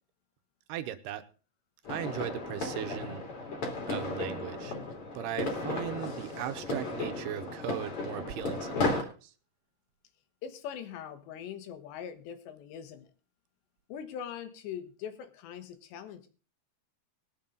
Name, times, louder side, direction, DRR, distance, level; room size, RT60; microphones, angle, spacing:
voice 1, 0.7-1.2 1.9-3.2 3.9-4.8 5.1-9.3, right 10 dB, 80° right, 9 dB, 2.7 m, -38 dB
sound 1, 1.8-9.0, left 2 dB, 35° left, 3.3 m, -34 dB
voice 2, 10.4-13.1 13.9-16.3, left 8 dB, 85° left, 9 dB, 3.5 m, -42 dB
21.0 x 7.2 x 3.9 m, 0.36 s
omnidirectional pair, 4.9 m